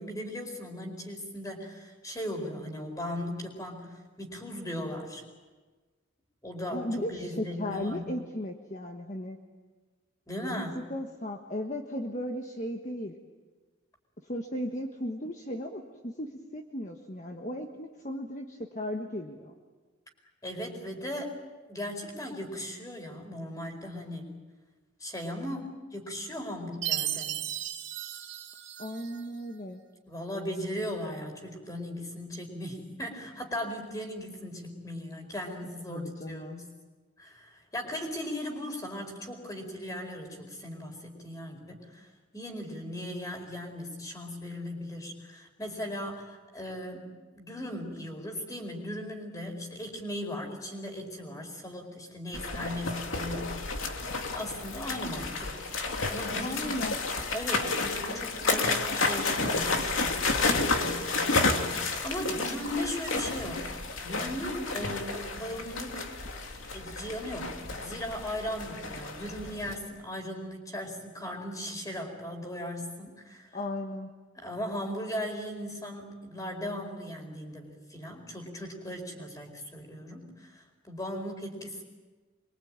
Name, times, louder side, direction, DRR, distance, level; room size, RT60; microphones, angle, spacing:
voice 1, 0.0-5.2 6.4-8.1 10.3-10.7 20.4-21.3 21.7-24.3 25.0-27.4 30.1-36.7 37.2-47.1 47.3-53.9 54.3-55.6 56.1-56.6 57.3-66.1 66.7-73.6 74.4-81.8, equal, 15° left, 3 dB, 4.7 m, -38 dB
voice 2, 6.7-9.4 10.5-10.6 10.9-13.2 14.2-19.5 28.8-29.8 35.9-36.6 56.4-57.0 73.5-74.1, left 1 dB, 35° left, 3 dB, 1.4 m, -36 dB
Chime, 26.8-29.3, right 12 dB, 65° right, 2.5 m, -35 dB
sound 1, 52.3-69.7, left 3 dB, 85° left, 2.8 m, -31 dB
25.5 x 23.5 x 8.9 m, 1.3 s
head